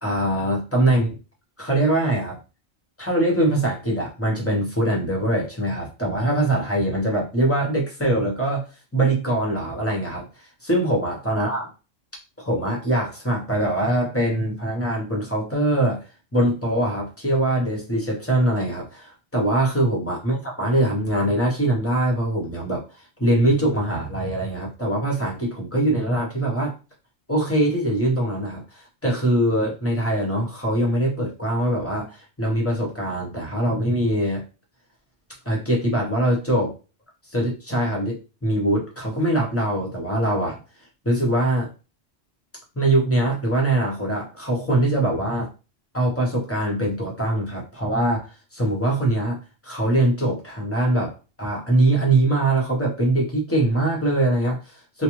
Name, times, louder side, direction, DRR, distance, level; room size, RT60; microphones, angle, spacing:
voice 1, 0.0-1.2 1.6-2.4 3.0-11.7 12.4-26.8 27.3-34.4 35.4-36.8 37.3-40.6 41.0-41.7 42.7-45.5 45.9-49.4 49.6-55.0, right 1 dB, 15° left, -2 dB, 0.8 m, -23 dB
2.5 x 2.2 x 3.0 m, 0.31 s
omnidirectional pair, 1.2 m